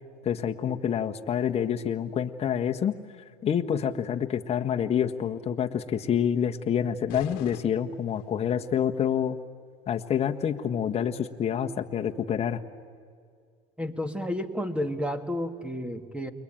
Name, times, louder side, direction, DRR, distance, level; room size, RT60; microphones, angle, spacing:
voice 1, 0.2-2.9 3.4-9.4 9.9-12.6, left 8 dB, 35° left, 5 dB, 1.5 m, -27 dB
sound 1, 7.1-8.6, left 12 dB, 60° left, 1.6 m, -43 dB
voice 2, 13.8-16.3, left 1 dB, 5° right, 9 dB, 2.1 m, -31 dB
29.0 x 22.0 x 9.1 m, 2.1 s
hypercardioid pair, 95°, 19 cm